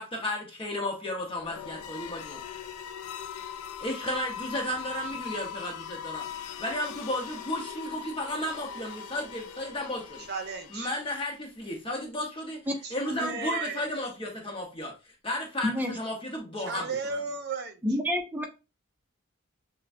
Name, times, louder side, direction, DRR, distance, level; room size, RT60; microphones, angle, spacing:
voice 1, 0.0-2.4 3.8-6.3 6.6-10.3 10.7-14.9 15.2-16.9, left 1 dB, 25° left, 0 dB, 0.8 m, -33 dB
sound 1, 1.3-11.3, left 8 dB, 85° left, 0.4 m, -40 dB
voice 2, 10.3-10.9 12.8-13.8 16.6-17.8, right 4 dB, 50° right, 7 dB, 0.7 m, -34 dB
voice 3, 17.8-18.4, left 1 dB, 10° right, 2 dB, 0.7 m, -28 dB
6.6 x 2.2 x 2.5 m, 0.30 s
head